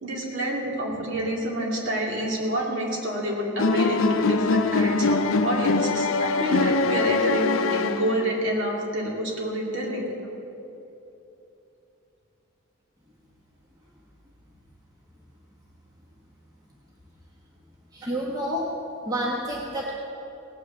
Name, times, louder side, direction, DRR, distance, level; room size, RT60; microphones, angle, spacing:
voice 1, 0.0-10.1, right 1 dB, 55° right, -2 dB, 2.5 m, -28 dB
sound 1, 3.6-8.5, left 3 dB, 70° left, 0.5 m, -23 dB
voice 2, 17.9-18.7 19.0-19.9, equal, 15° right, -3 dB, 1.3 m, -29 dB
18.0 x 6.5 x 7.8 m, 2.9 s
head